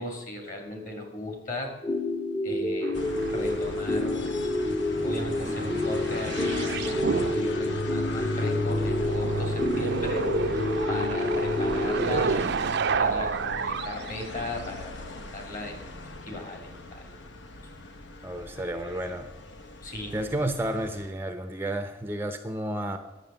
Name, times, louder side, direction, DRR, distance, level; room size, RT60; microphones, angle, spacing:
voice 1, 0.0-1.7 2.4-3.0 3.3-4.3 5.0-6.7 7.3-10.3 10.9-15.9 16.2-17.1 19.8-20.2, left 1 dB, 45° left, 4 dB, 2.7 m, -37 dB
sound 1, 1.8-12.1, left 1 dB, 20° left, 0.9 m, -29 dB
sound 2, 2.8-4.3 4.6-8.0 8.7-14.5 15.8-15.9, right 5 dB, 60° right, 0.6 m, -31 dB
sound 3, 2.9-21.1, left 1 dB, 65° left, 0.9 m, -36 dB
voice 2, 18.2-19.3 20.1-23.0, right 1 dB, 10° right, 7 dB, 0.6 m, -31 dB
10.5 x 8.1 x 6.8 m, 1.1 s
head